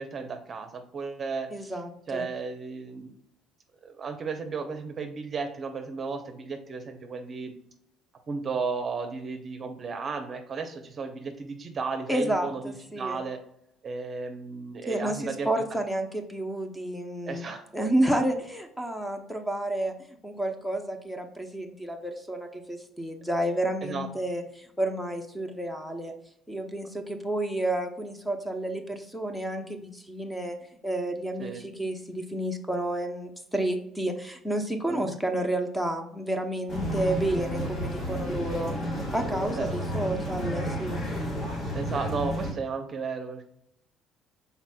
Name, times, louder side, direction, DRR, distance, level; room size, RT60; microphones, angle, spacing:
voice 1, 0.0-1.8 2.1-3.1 3.8-7.5 8.3-13.4 13.8-15.6 17.2-17.7 23.8-24.1 31.4-31.6 34.9-35.1 37.4-37.5 39.5-39.7 41.7-43.5, right 4 dB, 35° right, 5 dB, 0.7 m, -34 dB
voice 2, 1.5-2.3 12.1-13.2 14.9-17.5 17.7-19.9 20.2-26.1 26.5-30.6 30.8-41.0, right 1 dB, 5° left, 5 dB, 0.7 m, -30 dB
sound 1, 36.7-42.5, equal, 40° left, 1.5 m, -31 dB
5.9 x 4.0 x 2.2 m, 0.75 s
cardioid pair, 120°, 0 cm